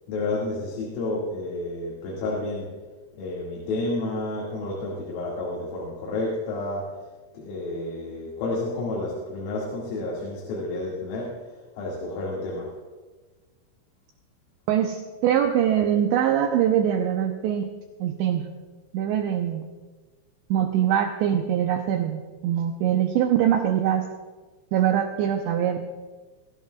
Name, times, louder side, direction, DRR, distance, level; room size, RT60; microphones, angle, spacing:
voice 1, 0.1-2.7 3.1-7.0 7.3-11.5 11.8-12.7, left 2 dB, 80° left, -4 dB, 4.8 m, -30 dB
voice 2, 14.7-17.7 18.0-18.5 18.9-19.7 20.5-24.1 24.7-25.9, right 10 dB, 85° right, 4 dB, 2.6 m, -23 dB
23.5 x 17.0 x 2.3 m, 1.3 s
omnidirectional pair, 6.0 m